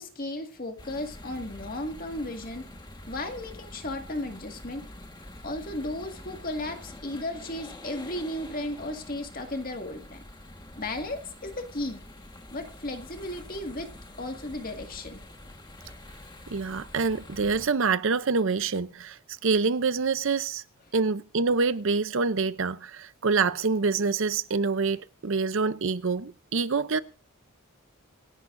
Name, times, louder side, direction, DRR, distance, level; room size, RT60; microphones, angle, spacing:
voice 1, 0.0-2.6 3.1-4.9 5.4-10.2 10.8-12.0 12.5-13.9 14.2-15.2, left 1 dB, 40° left, 2.0 m, -35 dB
sound 1, 0.8-17.7, left 1 dB, 20° left, 1.5 m, -46 dB
voice 2, 16.5-20.6 20.9-27.0, right 4 dB, 60° right, 0.6 m, -26 dB
25.5 x 11.0 x 2.6 m
head